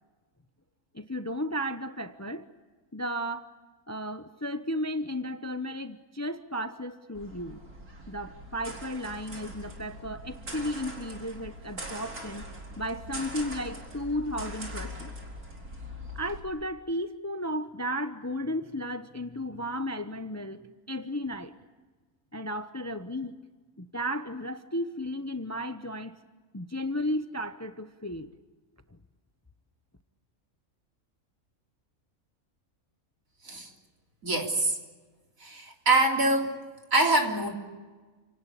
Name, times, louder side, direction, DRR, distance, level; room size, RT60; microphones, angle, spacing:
voice 1, 0.9-2.5 2.9-3.5 3.9-7.6 8.1-12.5 12.8-15.1 16.1-21.5 22.3-23.4 23.8-26.2 26.5-28.3, equal, 15° left, 9 dB, 0.8 m, -34 dB
sound 1, 7.1-16.4, equal, 85° right, 4.6 m, -42 dB
voice 2, 34.2-34.7 35.4-36.6 36.9-37.5, right 2 dB, 65° right, 2 dB, 4.0 m, -24 dB
28.5 x 18.5 x 8.5 m, 1.4 s
omnidirectional pair, 1.5 m